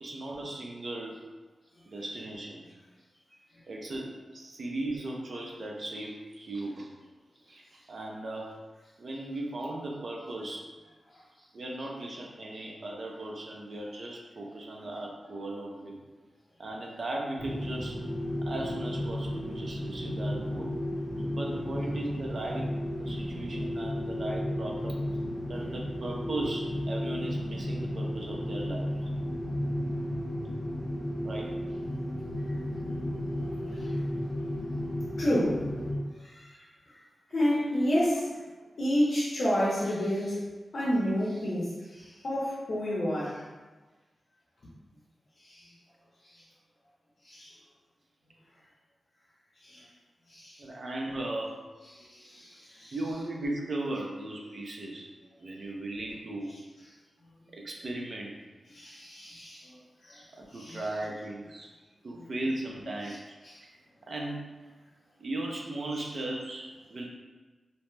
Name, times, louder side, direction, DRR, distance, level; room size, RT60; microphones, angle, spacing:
voice 1, 0.0-1.2 1.9-2.7 3.7-6.9 7.5-8.5 9.0-10.7 11.5-16.0 16.6-18.0 18.4-20.7 21.2-25.0 25.5-29.1 31.2-31.5 50.6-51.6 52.9-55.1 55.4-56.5 57.5-58.4 60.3-61.7 62.0-63.7 64.0-64.5 65.2-67.0, right 2 dB, 50° right, -1 dB, 0.5 m, -37 dB
sound 1, 17.4-36.0, equal, 15° left, 0.8 m, -33 dB
voice 2, 35.2-35.6 36.1-37.0 37.3-38.4 38.8-43.4 45.4-45.7 46.2-46.4 47.2-47.6 49.6-49.9 50.3-50.6 51.9-53.0 58.7-60.9 62.2-62.3 63.4-63.6, equal, 55° left, -8 dB, 0.7 m, -31 dB
2.7 x 2.1 x 3.2 m, 1.3 s
wide cardioid pair, 145°, 0 cm